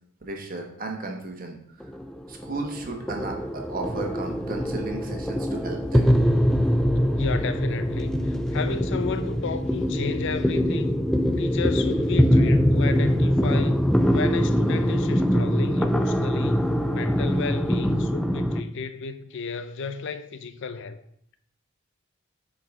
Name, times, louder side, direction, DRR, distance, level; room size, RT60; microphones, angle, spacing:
voice 1, 0.2-1.6 2.3-6.1, right 2 dB, 45° right, 1.2 m, -34 dB
sound 1, 1.8-18.6, equal, ahead, 0.3 m, -23 dB
voice 2, 7.2-11.0 11.4-16.7 16.9-21.0, left 5 dB, 65° left, 0.5 m, -33 dB
7.7 x 4.7 x 3.7 m
head